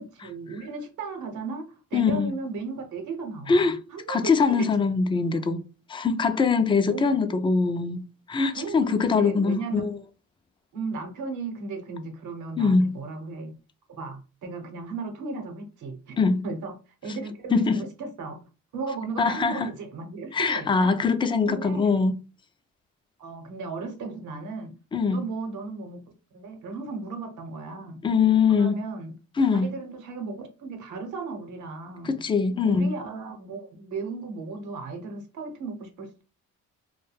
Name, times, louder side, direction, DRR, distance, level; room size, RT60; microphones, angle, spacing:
voice 1, 0.0-4.7 6.9-7.1 8.5-9.9 10.7-13.6 14.0-16.2 16.4-16.7 17.0-18.4 18.7-20.9 21.5-22.0 23.2-24.8 25.1-26.0 26.3-28.0 28.5-29.2 29.6-32.2 32.6-36.2, right 4 dB, 75° right, 0.9 m, -35 dB
voice 2, 1.9-2.3 3.5-3.7 4.1-5.6 5.9-10.0 12.6-13.0 16.2-16.4 17.5-17.8 19.2-19.7 20.3-22.1 24.9-25.2 28.0-28.8 29.4-29.7 32.0-32.9, left 5 dB, 15° left, 0.3 m, -22 dB
2.3 x 2.2 x 3.2 m
cardioid pair, 90°, 30 cm